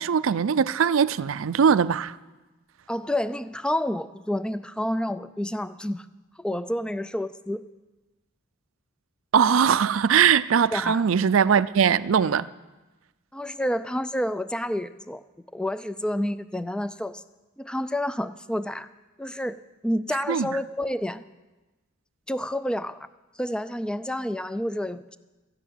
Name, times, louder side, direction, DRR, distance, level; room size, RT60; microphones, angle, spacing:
voice 1, 0.0-2.2 9.3-12.5 20.3-20.5, right 7 dB, 75° right, 16 dB, 0.4 m, -21 dB
voice 2, 2.9-6.1 6.4-7.6 10.7-11.1 13.3-15.2 15.5-17.2 17.6-18.9 19.2-19.6 19.8-21.2 22.3-23.1 23.4-25.2, left 1 dB, 5° left, 14 dB, 0.4 m, -29 dB
13.5 x 10.5 x 9.0 m, 1.1 s
head